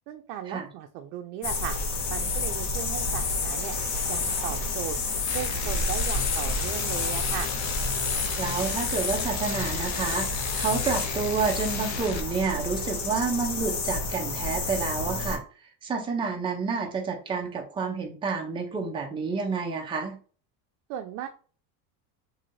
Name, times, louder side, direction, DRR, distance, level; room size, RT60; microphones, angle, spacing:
voice 1, 0.1-1.8 2.1-3.7 4.1-5.0 5.3-7.5 20.9-21.3, right 10 dB, 75° right, 5 dB, 0.5 m, -36 dB
sound 1, 1.4-15.4, left 3 dB, 60° left, 1.2 m, -29 dB
sound 2, 5.3-12.2, left 5 dB, 40° left, 0.6 m, -36 dB
voice 2, 8.4-10.3 10.6-15.4 15.8-20.2, right 5 dB, 10° right, 1 dB, 0.5 m, -29 dB
3.1 x 2.7 x 2.5 m, 0.40 s
supercardioid pair, 130°, 45 cm